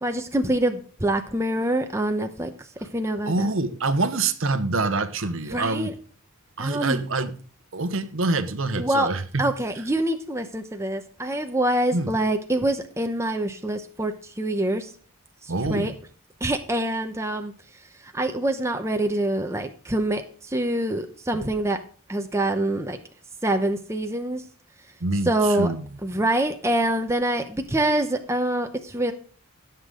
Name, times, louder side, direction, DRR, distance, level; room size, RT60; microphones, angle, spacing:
voice 1, 0.0-2.5 2.9-3.5 5.5-5.9 6.6-7.0 8.8-9.1 9.4-14.9 15.4-15.9 16.4-17.5 18.0-21.8 22.1-23.0 23.4-24.4 25.3-25.7 26.0-29.1, right 1 dB, 10° right, 0.8 m, -25 dB
voice 2, 3.3-5.9 6.6-7.4 7.7-9.5 11.9-12.1 15.5-15.9 25.0-25.9, right 3 dB, 60° right, 0.9 m, -26 dB
16.5 x 6.8 x 3.8 m
head